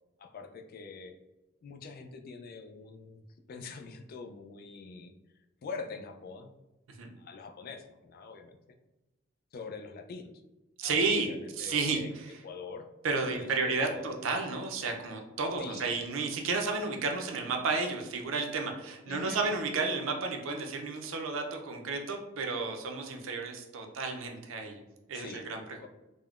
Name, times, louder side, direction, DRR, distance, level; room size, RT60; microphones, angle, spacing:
voice 1, 0.2-1.1 1.6-3.2 3.5-5.1 5.6-6.5 7.2-8.6 9.5-10.3 10.8-12.1 12.4-12.9 13.3-14.1 15.6-15.9 19.1-19.4 25.1-25.5 25.8-25.9, left 4 dB, 50° left, 5 dB, 0.3 m, -44 dB
voice 2, 10.8-11.3 11.6-12.4 13.0-24.8 25.1-25.6, right 4 dB, 85° right, 3 dB, 0.5 m, -32 dB
3.5 x 2.1 x 2.3 m, 1.0 s
head